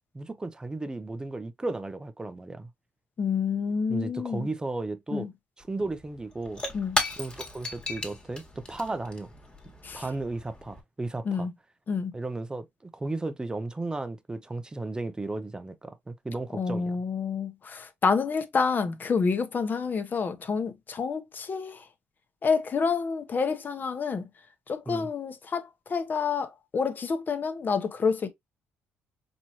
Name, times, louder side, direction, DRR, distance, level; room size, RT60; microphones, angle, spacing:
voice 1, 0.1-2.7 3.9-5.3 5.6-6.6 7.2-9.3 9.9-11.5 12.1-17.0 24.9-25.1, right 2 dB, 15° right, 0.6 m, -34 dB
voice 2, 3.2-4.5 5.1-5.3 6.7-7.0 9.8-10.0 11.2-11.5 11.9-12.1 16.5-21.8 22.4-24.3 24.7-28.3, left 5 dB, 40° left, 0.9 m, -28 dB
Shatter / Crushing, 5.6-5.7 5.9-10.8, left 2 dB, 20° left, 1.5 m, -35 dB
4.5 x 3.0 x 2.7 m
cardioid pair, 90°, 5 cm